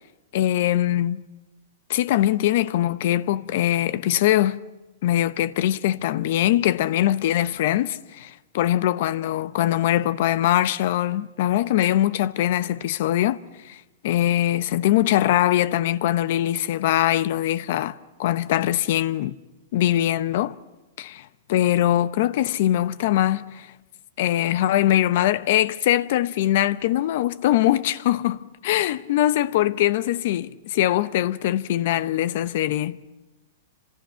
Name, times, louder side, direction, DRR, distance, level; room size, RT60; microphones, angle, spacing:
voice 1, 0.3-1.3 1.9-4.6 5.0-13.4 13.6-13.8 14.0-19.4 19.7-20.6 21.0-23.7 24.2-33.0, left 13 dB, 55° left, 1.0 m, -22 dB
30.0 x 26.5 x 5.8 m
hypercardioid pair, 140°, 0 cm